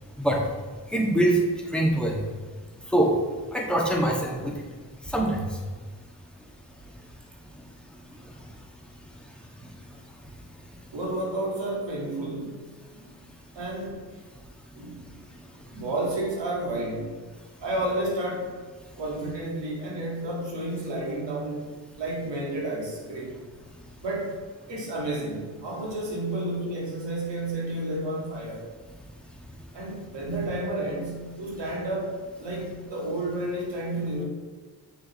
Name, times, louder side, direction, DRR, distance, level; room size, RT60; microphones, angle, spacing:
voice 1, 0.9-1.4 1.7-2.2 2.9-3.1 3.5-4.5 5.1-5.4, right 1 dB, ahead, -2 dB, 2.0 m, -23 dB
voice 2, 10.9-12.7 12.9-13.2 13.6-14.0 14.7-15.0 15.7-17.2 17.6-18.6 19.0-21.7 22.0-23.4 24.0-24.4 24.7-28.7 29.7-34.2, right 1 dB, 90° right, -3 dB, 2.0 m, -31 dB
7.3 x 6.5 x 3.2 m, 1.5 s
cardioid pair, 50°, 42 cm